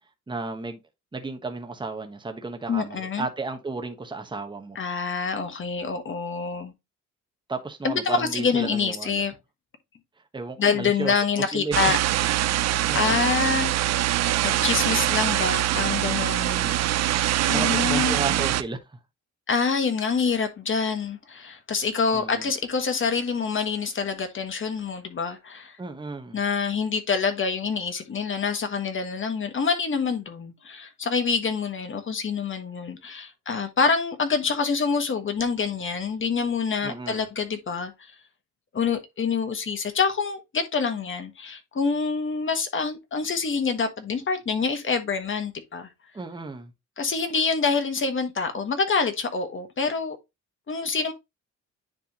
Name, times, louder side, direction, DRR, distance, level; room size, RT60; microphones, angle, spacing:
voice 1, 0.3-0.8 1.1-4.8 7.5-9.2 10.3-11.1 11.5-11.8 12.9-13.4 16.4-16.9 17.5-18.8 22.1-22.5 25.8-26.4 36.8-37.3 46.1-46.7, right 3 dB, 15° right, 1.2 m, -33 dB
voice 2, 2.7-3.3 4.7-6.7 7.8-9.3 10.6-12.0 12.2-12.5 12.9-14.0 14.4-16.7 17.5-18.2 19.5-25.7 26.3-37.9 38.7-45.9 47.0-50.2 50.7-51.1, left 5 dB, 40° left, 1.5 m, -26 dB
sound 1, 11.7-18.6, right 14 dB, 60° right, 0.5 m, -23 dB
9.8 x 3.5 x 2.9 m
cardioid pair, 90°, 30 cm